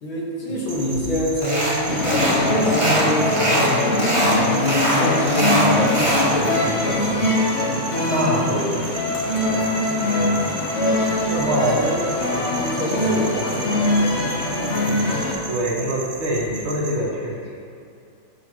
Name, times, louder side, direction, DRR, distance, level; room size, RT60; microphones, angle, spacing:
voice 1, 0.0-7.2 10.9-12.1 12.6-13.8, left 1 dB, 70° left, -5 dB, 2.6 m, -27 dB
sound 1, 0.7-17.0, right 2 dB, 60° right, 2.4 m, -36 dB
sound 2, 1.4-1.8 2.0-2.4 2.6-3.7 4.0-4.4 4.7-6.3, right 1 dB, 15° right, 1.8 m, -21 dB
sound 3, 1.9-15.3, left 1 dB, 40° left, 1.2 m, -22 dB
voice 2, 8.1-9.1 9.4-9.9 10.2-10.5 11.3-11.9 12.5-12.6 15.5-17.5, right 1 dB, 80° right, -4 dB, 2.4 m, -25 dB
15.0 x 6.3 x 3.2 m, 2.5 s
omnidirectional pair, 2.3 m